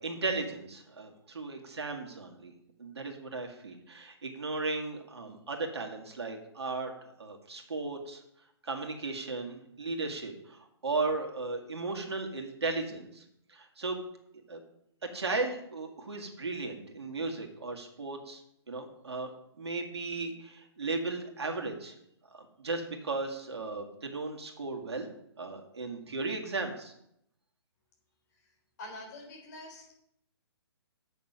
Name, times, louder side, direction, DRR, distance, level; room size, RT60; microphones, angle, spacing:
voice 1, 0.0-2.5 2.8-6.9 7.2-8.2 8.6-14.0 14.5-14.6 15.1-18.4 18.7-19.3 19.6-21.9 22.3-25.1 25.4-26.9, right 3 dB, 70° right, 3 dB, 2.1 m, -36 dB
voice 2, 28.8-30.0, left 1 dB, 40° left, 1 dB, 3.6 m, -45 dB
8.5 x 6.5 x 5.7 m, 0.77 s
figure-of-eight pair, 135°, 14 cm